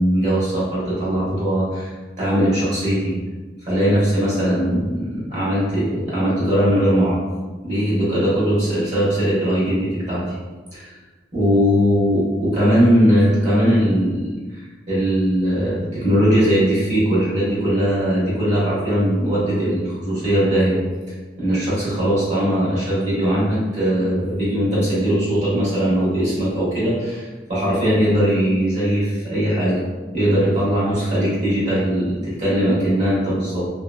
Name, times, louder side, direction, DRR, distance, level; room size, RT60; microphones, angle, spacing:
voice 1, 0.0-3.2 3.6-7.2 7.6-10.2 10.7-10.9 11.3-20.8 21.4-29.8 30.1-33.7, equal, 40° right, -8 dB, 1.2 m, -20 dB
2.9 x 2.8 x 2.2 m, 1.3 s
head